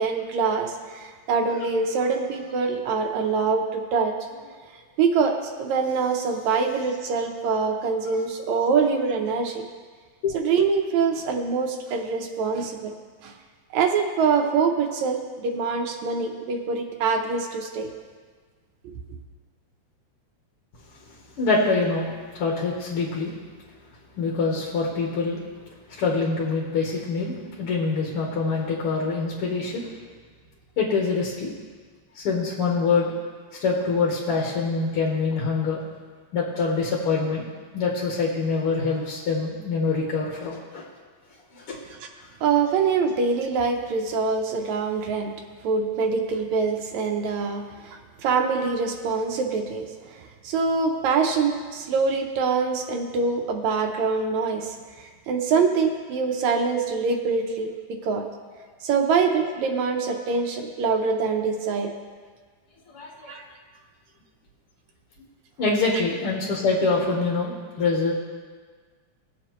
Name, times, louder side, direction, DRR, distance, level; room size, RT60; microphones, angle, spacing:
voice 1, 0.0-4.2 5.0-9.6 10.3-12.9 13.2-13.3 13.7-17.9 42.4-45.3 45.6-49.9 50.4-58.2 58.8-61.9 63.3-63.4, right 5 dB, 75° right, 3 dB, 2.1 m, -24 dB
voice 2, 21.4-23.3 24.2-25.4 26.0-29.9 30.8-31.5 32.2-33.1 33.6-35.8 36.3-37.4 37.7-40.8 41.7-41.8 62.9-63.3 65.6-68.1, left 4 dB, 55° left, -3 dB, 2.0 m, -25 dB
20.0 x 7.3 x 3.1 m, 1.5 s
omnidirectional pair, 3.4 m